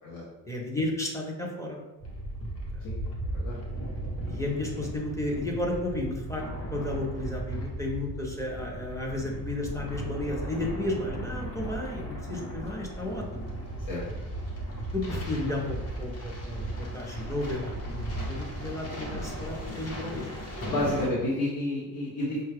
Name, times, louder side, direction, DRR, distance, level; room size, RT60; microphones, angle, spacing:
voice 1, 0.4-1.8 2.8-2.9 4.3-6.4 6.7-13.5 14.9-20.3, left 2 dB, 10° left, -1 dB, 0.5 m, -33 dB
sound 1, 2.0-21.1, right 1 dB, 40° left, 0.9 m, -36 dB
voice 2, 20.6-22.5, left 1 dB, 70° left, -6 dB, 0.9 m, -30 dB
5.3 x 2.3 x 3.3 m, 1.0 s
cardioid pair, 165°, 37 cm